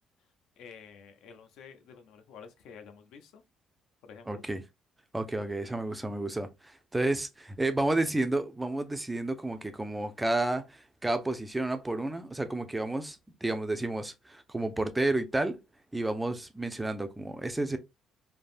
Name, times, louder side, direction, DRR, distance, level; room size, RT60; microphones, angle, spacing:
voice 1, 0.6-3.4 4.0-4.4, left 6 dB, 80° left, 0.5 m, -50 dB
voice 2, 4.3-4.6 5.1-15.6 15.9-17.8, right 2 dB, 10° right, 0.3 m, -31 dB
3.3 x 2.1 x 2.4 m
cardioid pair, 160°, 0 cm